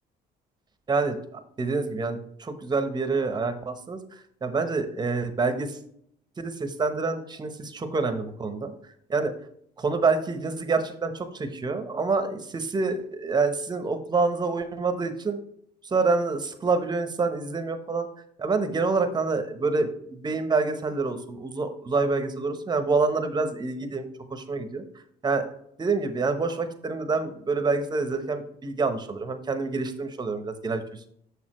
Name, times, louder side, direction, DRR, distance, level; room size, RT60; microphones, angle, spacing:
voice 1, 0.9-5.8 6.4-8.7 9.1-9.3 9.8-15.4 15.8-18.1 18.4-24.8 25.2-25.5 25.8-31.1, right 4 dB, 25° right, 8 dB, 0.9 m, -27 dB
6.8 x 6.5 x 3.0 m, 0.69 s
cardioid pair, 110°, 17 cm